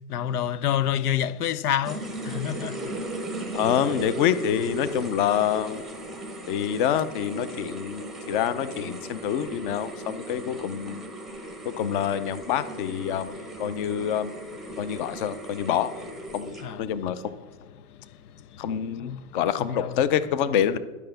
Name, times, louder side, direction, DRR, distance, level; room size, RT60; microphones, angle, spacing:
voice 1, 0.0-3.5 14.8-15.2 16.6-16.9 17.3-17.5 17.7-18.7 18.9-20.0, left 10 dB, 90° left, 0.7 m, -30 dB
sound 1, 1.8-16.9, right 1 dB, ahead, 0.7 m, -37 dB
voice 2, 3.5-5.8 6.5-11.1 11.6-14.3 14.8-15.9 16.3-17.3 18.6-20.8, left 9 dB, 35° left, 0.6 m, -26 dB
11.0 x 5.8 x 7.7 m
hypercardioid pair, 145°, 44 cm